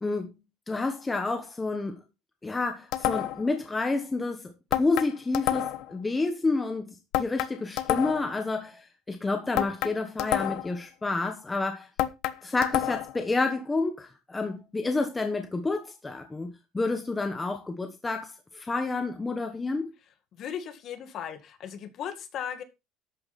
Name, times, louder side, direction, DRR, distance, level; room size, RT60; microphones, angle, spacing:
voice 1, 0.0-0.3 0.7-2.0 2.4-11.9 12.4-16.5 16.7-19.9, left 3 dB, 10° left, 1.3 m, -29 dB
sound 1, 2.9-3.5 4.7-5.9 7.1-8.4 9.6-10.8 12.0-13.2, left 13 dB, 55° left, 1.1 m, -29 dB
voice 2, 20.4-22.6, left 9 dB, 35° left, 2.1 m, -37 dB
12.5 x 8.8 x 4.2 m
cardioid pair, 180°, 0 cm